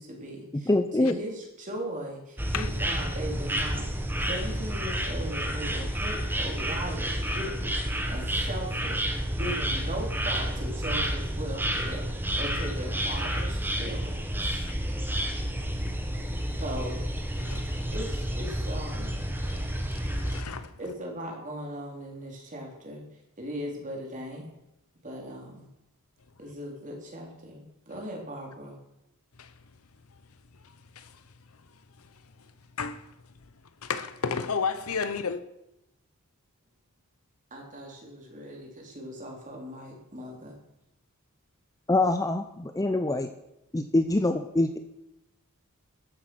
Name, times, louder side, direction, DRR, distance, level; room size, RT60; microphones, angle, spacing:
voice 1, 0.0-0.7 1.0-9.0 9.4-12.0 12.3-14.2 14.4-14.7 16.6-17.1 17.9-19.2 20.8-23.0 23.4-24.5 25.0-25.7 26.4-28.8 37.5-40.6, right 1 dB, 35° right, 3.5 m, -38 dB
voice 2, 0.7-1.1 41.9-43.3 43.7-44.8, left 2 dB, 15° left, 0.6 m, -24 dB
sound 1, 2.4-20.4, equal, 10° right, 1.3 m, -30 dB
voice 3, 14.6-15.3 15.6-16.0 16.5-16.6 17.4-17.9 19.4-20.8 29.4-29.6 30.1-30.2 30.5-33.4 33.8-35.4, left 5 dB, 80° left, 0.9 m, -36 dB
13.5 x 7.7 x 6.2 m
head